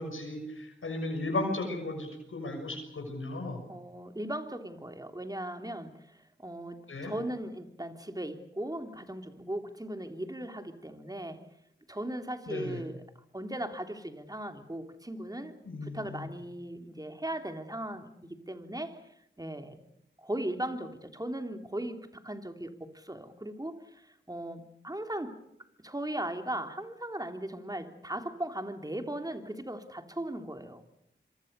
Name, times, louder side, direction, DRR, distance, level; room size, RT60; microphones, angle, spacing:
voice 1, 0.0-3.6 6.9-7.1 12.5-12.8 15.6-16.3, left 2 dB, 85° left, 2 dB, 6.4 m, -35 dB
voice 2, 3.7-11.4 11.9-13.0 13.3-15.6 15.8-19.0 19.4-19.8 20.2-25.4 25.8-30.8, right 1 dB, 20° right, 6 dB, 3.3 m, -38 dB
26.0 x 24.5 x 6.9 m, 0.76 s
cardioid pair, 45°, 20 cm